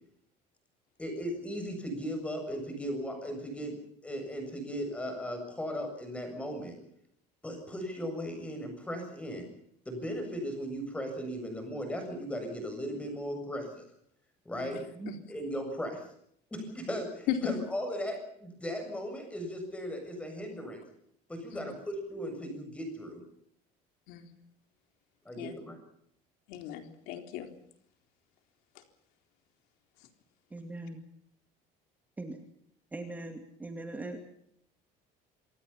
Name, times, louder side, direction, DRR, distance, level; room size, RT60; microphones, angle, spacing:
voice 1, 1.0-3.8 4.0-6.7 7.4-9.5 9.9-13.8 14.4-14.8 15.3-16.1 16.5-20.8 21.3-23.2 25.3-25.8, equal, 5° left, 5 dB, 7.5 m, -37 dB
voice 2, 26.5-27.5, left 10 dB, 75° left, 6 dB, 3.9 m, -35 dB
voice 3, 30.5-31.0 32.2-32.4 32.9-34.2, right 2 dB, 10° right, 4 dB, 2.4 m, -40 dB
28.0 x 23.5 x 5.8 m, 0.71 s
cardioid pair, 175°, 16 cm